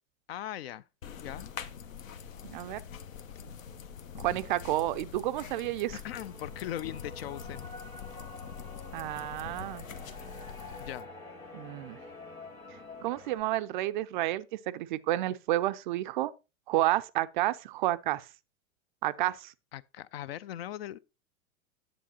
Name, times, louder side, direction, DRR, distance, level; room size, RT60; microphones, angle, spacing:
voice 1, 0.3-0.8 1.2-1.5 6.0-7.7 10.2-10.3 10.8-11.1 19.7-21.0, left 12 dB, 50° left, 0.4 m, -39 dB
sound 1, 1.0-11.0, left 7 dB, 70° left, 1.0 m, -44 dB
voice 2, 2.4-2.8 4.2-6.0 8.9-9.8 11.5-12.0 13.0-16.3 16.7-18.2 19.0-19.5, right 15 dB, 40° right, 0.4 m, -30 dB
sound 2, 6.1-13.4, left 2 dB, 85° left, 2.1 m, -47 dB
10.0 x 7.7 x 2.8 m
figure-of-eight pair, 95°, 42 cm